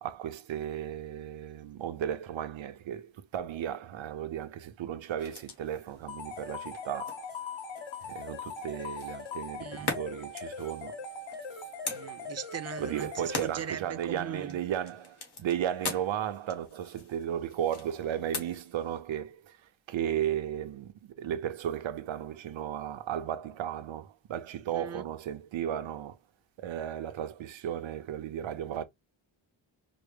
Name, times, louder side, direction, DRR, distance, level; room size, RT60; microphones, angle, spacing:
voice 1, 0.0-7.2 8.0-11.0 12.8-19.6 19.9-26.2 26.6-28.8, right 10 dB, 90° right, 0.7 m, -35 dB
sound 1, 5.2-19.0, left 3 dB, 60° left, 1.6 m, -43 dB
sound 2, 6.1-13.8, left 4 dB, 90° left, 1.0 m, -41 dB
voice 2, 9.6-9.9 11.9-14.6 24.7-25.0, right 7 dB, 35° right, 0.4 m, -39 dB
4.6 x 2.0 x 3.2 m
wide cardioid pair, 110°, 45 cm